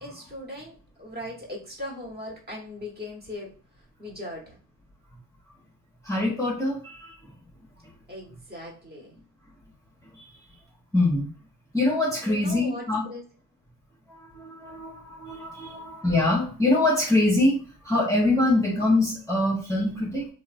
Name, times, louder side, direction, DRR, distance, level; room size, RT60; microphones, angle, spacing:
voice 1, 0.0-3.5 4.0-4.6 8.1-9.2 12.2-12.8 13.1-13.2, left 1 dB, 25° right, -2 dB, 1.3 m, -38 dB
voice 2, 6.0-7.3 10.1-10.3 10.9-11.3 11.7-13.0 14.1-17.6 17.8-20.3, left 2 dB, 10° left, -3 dB, 0.8 m, -24 dB
2.8 x 2.4 x 2.5 m, 0.40 s
supercardioid pair, 75°, 40 cm